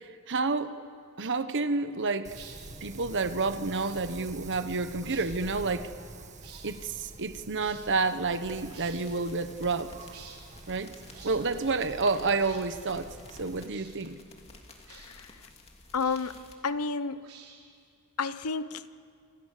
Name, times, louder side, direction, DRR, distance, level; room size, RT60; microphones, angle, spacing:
voice 1, 0.3-0.7 1.2-2.4 2.8-5.9 6.6-10.0 10.7-10.9 11.2-14.2, right 3 dB, 55° right, 11 dB, 1.3 m, -29 dB
Wind, 2.2-13.7, right 2 dB, 35° right, 1.6 m, -47 dB
sound 1, 2.3-2.6 3.6-4.0 5.0-5.3 6.4-6.6 7.6-7.8 8.7-9.0 10.0-10.4 11.1-11.4 12.3-12.6 13.6-13.9 14.8-15.1 15.9-16.4 17.2-17.7, right 7 dB, 75° right, 4.4 m, -51 dB
sound 2, 8.4-16.5, left 2 dB, 30° left, 2.7 m, -53 dB
voice 2, 14.9-15.3 15.9-16.4 16.6-17.2 18.2-18.8, left 4 dB, 90° left, 14 dB, 0.9 m, -31 dB
29.0 x 26.0 x 6.8 m, 2.2 s
head